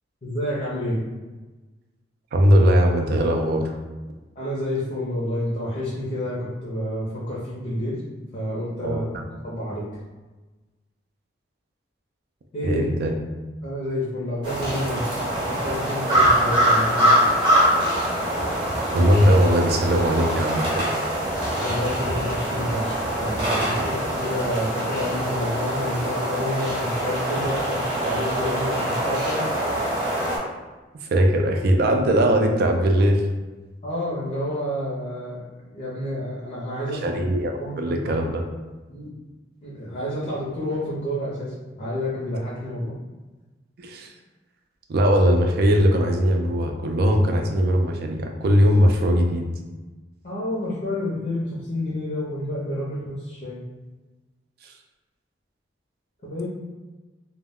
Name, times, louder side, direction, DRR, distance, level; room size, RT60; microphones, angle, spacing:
voice 1, 0.2-1.0 4.4-8.0 8.3-9.0 9.4-9.9 12.5-12.9 13.6-15.0 15.4-17.1 21.6-29.4 33.8-35.4 35.7-37.2 37.6-38.2 38.9-39.1 39.6-42.9 50.2-53.6 56.2-56.4, left 1 dB, 45° left, -7 dB, 0.6 m, -29 dB
voice 2, 2.3-3.8 8.8-9.2 12.6-13.2 18.9-20.9 31.0-33.2 37.0-38.4 43.8-44.1 44.9-49.5 54.6-54.7, equal, 55° right, 3 dB, 0.4 m, -20 dB
sound 1, 14.4-30.4, right 1 dB, 25° right, 0.8 m, -24 dB
2.2 x 2.1 x 3.5 m, 1.2 s
head